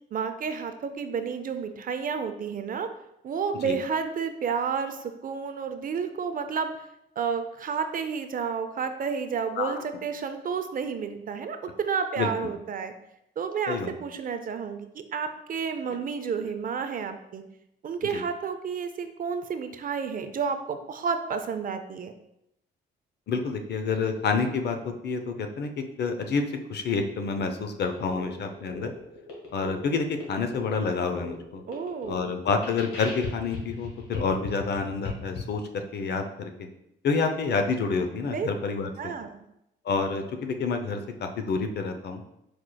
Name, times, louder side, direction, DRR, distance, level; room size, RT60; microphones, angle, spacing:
voice 1, 0.1-2.9 3.2-6.7 7.2-12.9 13.4-17.4 17.8-22.1 31.7-32.3 38.3-38.5 39.0-39.3, right 6 dB, 45° right, 8 dB, 0.5 m, -31 dB
voice 2, 23.3-26.4 26.7-28.9 29.5-31.6 32.1-36.7 37.0-39.1 39.8-42.2, left 4 dB, 55° left, 6 dB, 0.6 m, -28 dB
sound 1, 27.9-35.4, left 3 dB, 85° left, 1.4 m, -39 dB
4.8 x 4.4 x 2.2 m, 0.82 s
cardioid pair, 90°, 20 cm